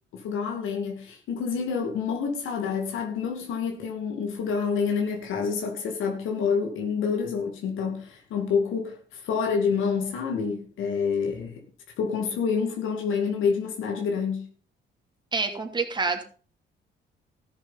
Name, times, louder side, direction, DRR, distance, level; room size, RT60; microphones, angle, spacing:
voice 1, 0.1-11.6 12.0-14.4, left 6 dB, 85° left, 3 dB, 2.3 m, -28 dB
voice 2, 15.3-16.2, right 4 dB, 20° right, 3 dB, 2.8 m, -27 dB
14.0 x 7.3 x 5.6 m, 0.40 s
cardioid pair, 90°, 20 cm